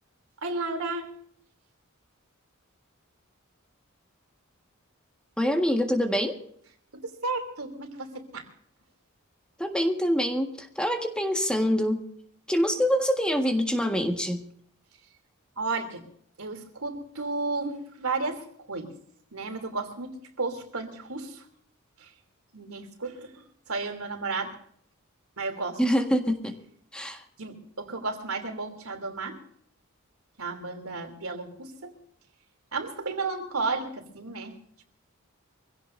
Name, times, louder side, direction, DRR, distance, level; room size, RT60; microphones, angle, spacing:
voice 1, 0.4-1.1 6.9-8.4 15.6-16.0 16.4-18.9 19.3-21.4 22.0-22.1 22.5-24.6 25.4-25.8 27.4-29.4 30.4-31.9 32.7-34.6, right 3 dB, 85° right, 5 dB, 3.2 m, -33 dB
voice 2, 5.4-6.4 9.6-12.0 12.5-14.4 25.8-26.5 26.9-27.2, equal, 5° left, 4 dB, 1.6 m, -25 dB
25.0 x 16.5 x 2.7 m, 0.65 s
head